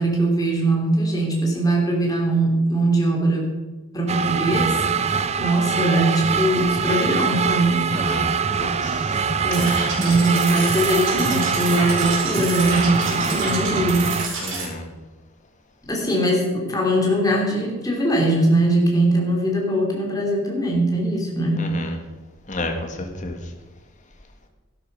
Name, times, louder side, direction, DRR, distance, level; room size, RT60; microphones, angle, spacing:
voice 1, 0.0-3.5 3.9-4.7 5.4-7.8 9.4-14.1 15.9-21.7, right 1 dB, 20° left, -1 dB, 3.0 m, -21 dB
sound 1, 4.1-14.3, right 5 dB, 30° right, 0.5 m, -23 dB
voice 2, 7.9-8.3 8.6-9.2 9.5-9.7 14.4-14.8 21.6-21.9 22.5-23.4, left 2 dB, 35° left, 3 dB, 1.7 m, -31 dB
sound 2, 9.5-14.6, right 3 dB, 65° right, 4.9 m, -30 dB
12.5 x 11.5 x 5.5 m, 1.2 s
head